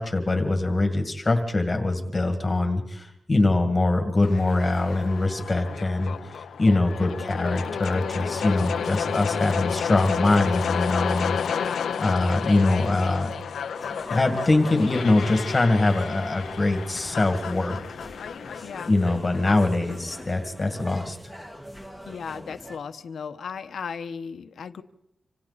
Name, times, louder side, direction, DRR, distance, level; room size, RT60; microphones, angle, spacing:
voice 1, 0.0-11.4 12.0-13.3 14.1-17.8 18.9-21.2, left 2 dB, 20° left, 5 dB, 2.2 m, -23 dB
sound 1, 4.2-20.2, left 7 dB, 90° left, 0.9 m, -31 dB
voice 2, 11.5-11.9 12.6-13.2 18.6-18.9 19.5-19.6 22.1-24.8, left 6 dB, 70° left, 9 dB, 1.2 m, -36 dB
sound 2, 13.7-22.8, equal, 5° right, 2.1 m, -43 dB
27.0 x 26.5 x 4.2 m, 0.80 s
wide cardioid pair, 175°, 0 cm